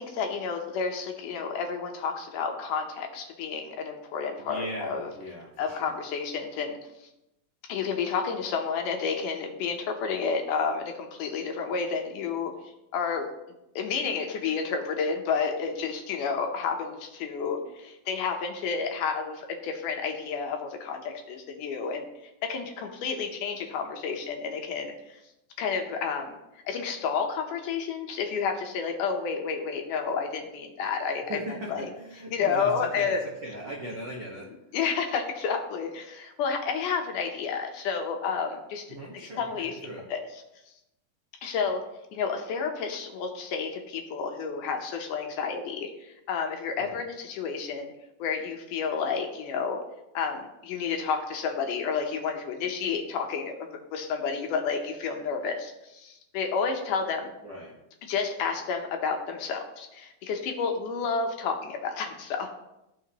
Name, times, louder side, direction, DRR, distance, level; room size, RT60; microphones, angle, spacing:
voice 1, 0.0-5.1 5.6-6.8 7.7-12.5 12.9-13.3 13.8-22.1 22.4-25.2 25.6-26.4 26.7-31.4 31.7-31.9 32.3-33.2 34.7-39.8 40.1-40.2 41.4-41.8 42.1-47.9 48.2-49.8 50.1-57.3 58.1-62.5, left 5 dB, 75° left, 3 dB, 2.2 m, -30 dB
voice 2, 4.4-6.0 31.3-34.5 38.9-40.1 46.8-47.0 57.4-57.8, right 1 dB, 65° right, -3 dB, 1.0 m, -39 dB
14.0 x 6.0 x 2.9 m, 0.88 s
omnidirectional pair, 4.1 m